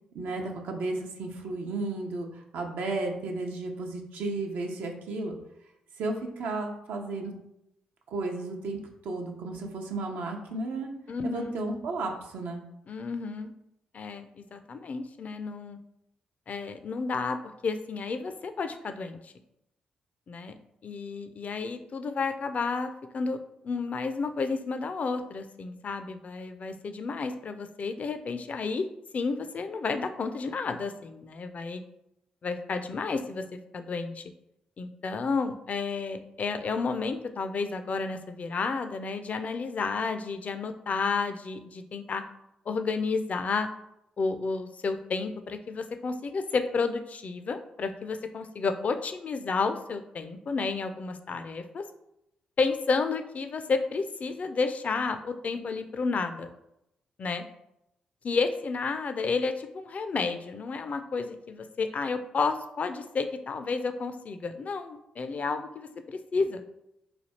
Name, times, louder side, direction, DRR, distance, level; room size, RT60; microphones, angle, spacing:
voice 1, 0.1-5.4 6.0-7.3 8.1-10.9 11.2-12.6, right 2 dB, 75° right, 2 dB, 0.6 m, -33 dB
voice 2, 11.1-11.6 12.9-13.5 13.9-15.8 16.5-17.4 17.6-19.3 20.3-20.5 20.8-28.8 29.1-31.8 32.4-34.2 34.8-42.2 42.7-43.7 44.2-51.8 52.6-56.5 57.2-57.4 58.2-66.6, left 4 dB, 50° left, 8 dB, 0.4 m, -31 dB
3.3 x 2.3 x 4.1 m, 0.83 s
hypercardioid pair, 45°, 3 cm